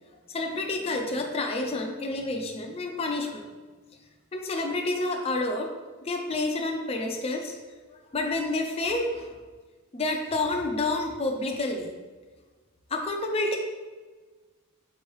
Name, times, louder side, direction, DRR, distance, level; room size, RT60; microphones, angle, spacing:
voice 1, 0.3-3.5 4.3-5.7 6.0-7.5 8.1-9.3 9.9-11.9 12.9-13.6, left 2 dB, 25° left, 2 dB, 0.4 m, -29 dB
4.3 x 3.0 x 3.1 m, 1.3 s
head